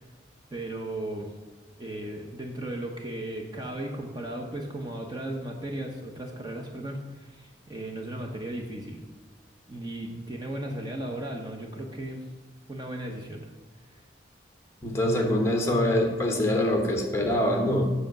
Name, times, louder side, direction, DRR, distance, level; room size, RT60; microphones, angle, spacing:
voice 1, 0.5-1.3 1.8-9.0 9.7-12.2 12.7-13.4 13.9-14.0, right 1 dB, 25° right, 1 dB, 0.9 m, -36 dB
voice 2, 14.8-17.9, left 1 dB, 15° left, 2 dB, 1.1 m, -24 dB
7.7 x 6.5 x 5.9 m, 1.1 s
head